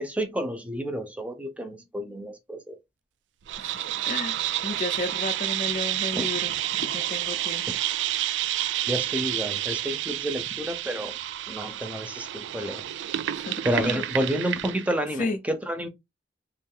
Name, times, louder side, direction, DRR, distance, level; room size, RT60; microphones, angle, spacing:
voice 1, 0.0-2.8 6.1-6.3 7.6-7.7 8.9-11.2 11.5-12.8 13.6-15.9, equal, 10° right, 0.6 m, -30 dB
sound 1, 3.5-15.0, right 13 dB, 85° right, 0.3 m, -29 dB
voice 2, 3.6-7.6 13.4-14.0 15.2-15.4, left 2 dB, 45° left, 0.5 m, -33 dB
3.2 x 2.5 x 3.7 m
head